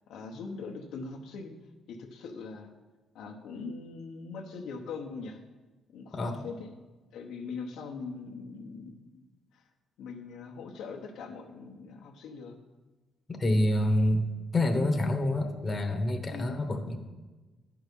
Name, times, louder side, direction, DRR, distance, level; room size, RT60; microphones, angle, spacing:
voice 1, 0.1-1.5 1.9-2.7 3.1-5.4 5.9-6.7 7.1-9.2 9.5-9.6 10.0-12.6 16.3-16.6, left 4 dB, 80° left, 0 dB, 1.0 m, -41 dB
voice 2, 13.3-14.2 14.5-17.0, left 1 dB, 30° left, 3 dB, 1.1 m, -27 dB
10.5 x 4.7 x 5.4 m, 1.2 s
cardioid pair, 90°, 0 cm